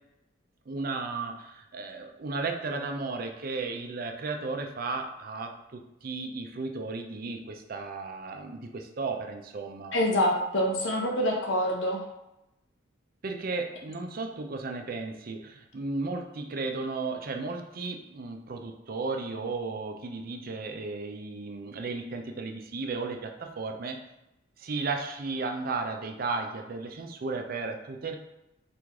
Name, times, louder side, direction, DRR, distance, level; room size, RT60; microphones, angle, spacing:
voice 1, 0.7-9.9 13.2-24.0 24.6-28.2, right 3 dB, 50° right, 4 dB, 0.4 m, -34 dB
voice 2, 9.9-12.0, left 1 dB, 70° left, 1 dB, 0.9 m, -26 dB
4.6 x 2.5 x 3.6 m, 0.92 s
head